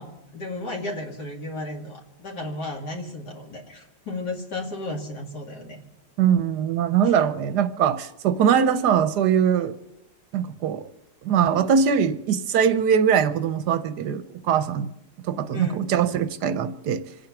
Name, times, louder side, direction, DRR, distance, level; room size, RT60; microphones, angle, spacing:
voice 1, 0.0-5.8 7.0-7.1 9.5-9.7 15.5-15.8, left 2 dB, 60° left, 2.8 m, -34 dB
voice 2, 6.2-9.7 10.3-10.9 11.2-14.9 15.3-17.0, right 7 dB, 70° right, 1.3 m, -22 dB
26.0 x 9.1 x 5.9 m
omnidirectional pair, 2.0 m